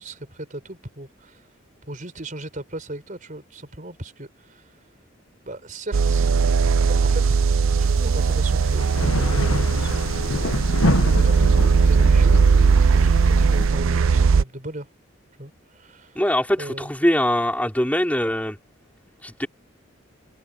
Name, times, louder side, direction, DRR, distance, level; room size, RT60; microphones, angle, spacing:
voice 1, 0.0-1.5 1.9-4.8 5.4-6.3 6.8-7.5 7.8-10.4 10.7-12.4 12.9-14.9 15.4-16.2 16.6-16.9, right 1 dB, 40° right, 4.8 m, -37 dB
sound 1, 5.9-14.4, right 5 dB, 80° right, 0.5 m, -18 dB
sound 2, 7.8-13.7, left 2 dB, 90° left, 1.4 m, -28 dB
voice 2, 16.1-18.6 19.2-19.5, left 1 dB, 5° left, 4.5 m, -22 dB
head